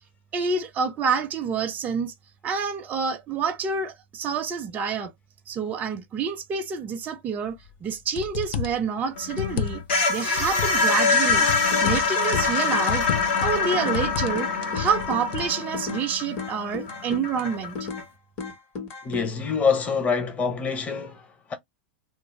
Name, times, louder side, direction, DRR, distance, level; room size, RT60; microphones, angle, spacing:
voice 1, 0.3-2.1 2.4-5.1 5.5-9.8 10.1-13.1 13.4-14.5 14.7-17.9, right 6 dB, 25° right, 0.4 m, -28 dB
sound 1, 7.7-7.8 8.2-8.9 9.3-10.0 10.4-10.8 11.3-12.6 12.9-13.6 13.9-14.4 14.6-15.5, left 9 dB, 55° left, 0.4 m, -31 dB
sound 2, 9.2-18.0, left 4 dB, 75° left, 1.0 m, -25 dB
sound 3, 11.4-12.0 12.3-14.1 14.4-16.1 16.4-18.1 18.4-19.3, left 4 dB, 40° left, 1.1 m, -35 dB
voice 2, 19.0-21.5, left 5 dB, 25° left, 0.8 m, -26 dB
2.3 x 2.1 x 3.1 m
hypercardioid pair, 105°, 6 cm